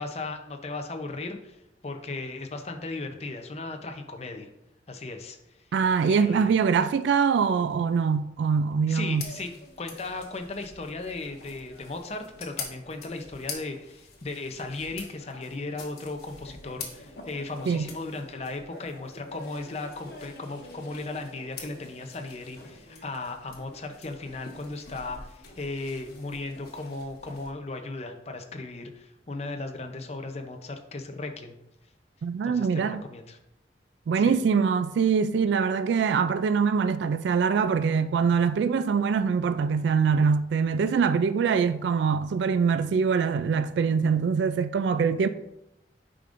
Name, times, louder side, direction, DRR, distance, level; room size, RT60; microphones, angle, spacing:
voice 1, 0.0-1.6 1.8-4.5 4.9-5.4 6.0-6.5 8.9-9.5 9.8-31.6 32.4-33.4 34.1-34.4, left 3 dB, 35° left, 0.6 m, -36 dB
voice 2, 5.7-9.2 17.7-17.9 32.2-33.0 34.1-45.3, right 6 dB, 75° right, 0.3 m, -23 dB
sound 1, 9.1-27.5, left 4 dB, 60° left, 1.2 m, -45 dB
8.5 x 5.1 x 2.5 m
head